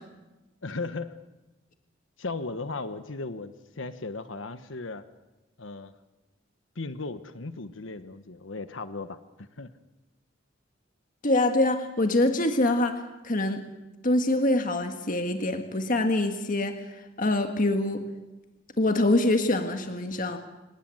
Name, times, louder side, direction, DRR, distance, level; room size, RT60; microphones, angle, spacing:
voice 1, 0.6-1.2 2.2-5.0 5.6-5.9 6.7-9.7, left 3 dB, 85° left, 11 dB, 1.2 m, -36 dB
voice 2, 11.2-13.6 14.0-16.8 17.2-18.0 18.8-20.4, left 1 dB, 45° left, 5 dB, 1.7 m, -24 dB
25.5 x 19.5 x 7.9 m, 1.1 s
head